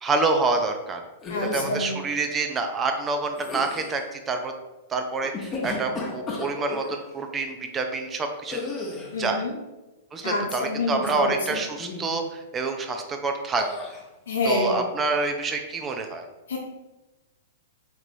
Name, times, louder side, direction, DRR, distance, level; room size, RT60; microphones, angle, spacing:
voice 1, 0.0-1.0 1.5-4.5 4.9-8.6 9.2-9.4 10.1-13.6 14.4-16.2, right 3 dB, 20° right, 5 dB, 0.4 m, -27 dB
sound 1, 1.2-1.9 3.3-4.0 5.2-7.0 8.5-9.2 11.0-11.5 11.8-12.2 13.6-14.0, left 2 dB, 25° left, 0.8 m, -34 dB
voice 2, 1.3-2.0 9.1-9.6 10.2-11.6 14.3-14.8 16.5-16.6, left 2 dB, 75° left, 0 dB, 0.5 m, -27 dB
4.4 x 2.9 x 2.6 m, 1.0 s
figure-of-eight pair, 105°, 0 cm